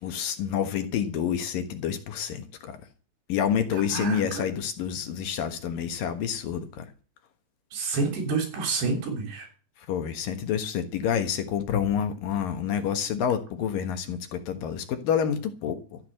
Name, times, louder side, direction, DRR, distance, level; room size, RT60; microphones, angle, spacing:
voice 1, 0.0-2.8 3.3-6.9 9.9-16.0, left 8 dB, 65° left, 2.9 m, -28 dB
voice 2, 3.9-4.4 7.7-9.5, right 4 dB, 80° right, 5.6 m, -28 dB
14.0 x 9.5 x 7.8 m
omnidirectional pair, 4.6 m